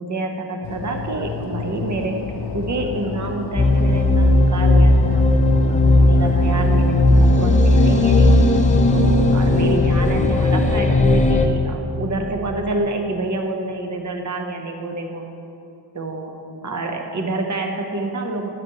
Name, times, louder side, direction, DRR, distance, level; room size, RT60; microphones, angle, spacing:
voice 1, 0.0-2.2 2.5-5.2 5.7-8.4 8.9-15.3 15.9-16.3 16.6-18.5, right 2 dB, 40° right, 3 dB, 0.9 m, -27 dB
sound 1, 0.6-11.0, left 6 dB, 65° left, 0.6 m, -31 dB
sound 2, 3.6-11.5, left 2 dB, 15° left, 0.5 m, -15 dB
12.0 x 9.4 x 3.0 m, 2.8 s
wide cardioid pair, 165°, 44 cm